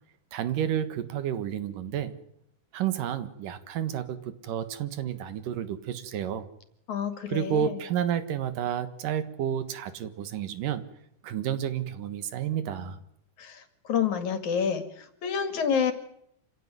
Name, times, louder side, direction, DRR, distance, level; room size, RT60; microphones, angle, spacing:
voice 1, 0.3-2.2 2.7-6.5 7.3-10.9 11.2-13.0, right 9 dB, 80° right, 12 dB, 3.2 m, -30 dB
voice 2, 6.9-7.7 13.4-13.6 13.9-14.8 15.2-15.9, left 7 dB, 65° left, 10 dB, 3.5 m, -27 dB
26.5 x 16.5 x 9.6 m, 0.74 s
omnidirectional pair, 3.7 m